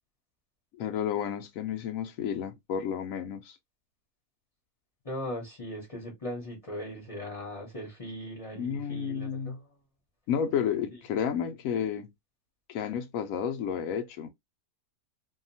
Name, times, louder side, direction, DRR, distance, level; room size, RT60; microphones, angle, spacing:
voice 1, 0.8-3.6 8.6-9.6 10.3-12.1 12.7-14.3, left 8 dB, 70° left, 0.9 m, -31 dB
voice 2, 5.0-9.7 10.9-11.0, equal, 30° left, 0.7 m, -39 dB
2.7 x 2.3 x 2.6 m
omnidirectional pair, 1.6 m